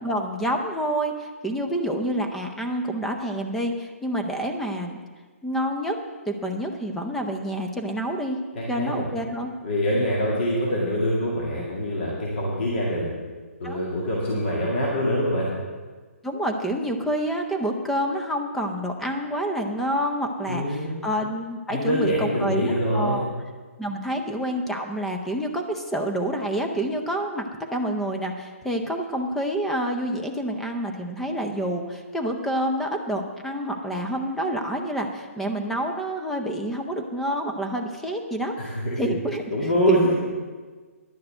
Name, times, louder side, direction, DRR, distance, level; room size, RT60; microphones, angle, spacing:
voice 1, 0.0-5.0 5.4-6.0 6.3-8.4 8.7-9.5 13.6-13.8 16.2-23.2 23.8-27.5 27.7-39.5 39.9-40.0, right 1 dB, 5° left, 3 dB, 0.6 m, -28 dB
voice 2, 8.5-9.1 9.6-13.2 13.6-15.5 20.5-21.0 21.7-23.3 38.6-39.0 39.5-40.1, equal, 50° left, -4 dB, 2.2 m, -24 dB
11.0 x 6.6 x 7.8 m, 1.4 s
hypercardioid pair, 165°, 8 cm